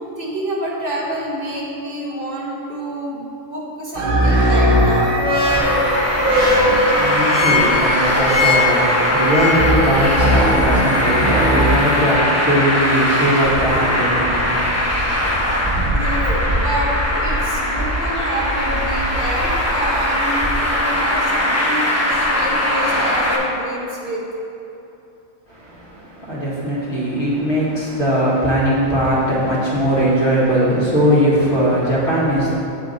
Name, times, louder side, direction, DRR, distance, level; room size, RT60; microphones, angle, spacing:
voice 1, 0.2-5.1 6.3-6.7 15.9-24.2, equal, 45° right, -5 dB, 1.4 m, -27 dB
sound 1, 3.9-12.2, left 1 dB, 80° right, 2.0 m, -18 dB
Traffic noise roadway noise, 5.5-23.4, left 1 dB, 15° left, 0.9 m, -20 dB
voice 2, 6.7-15.6 25.5-32.5, equal, 55° left, -8 dB, 2.4 m, -20 dB
8.1 x 7.3 x 3.9 m, 2.9 s
omnidirectional pair, 1.4 m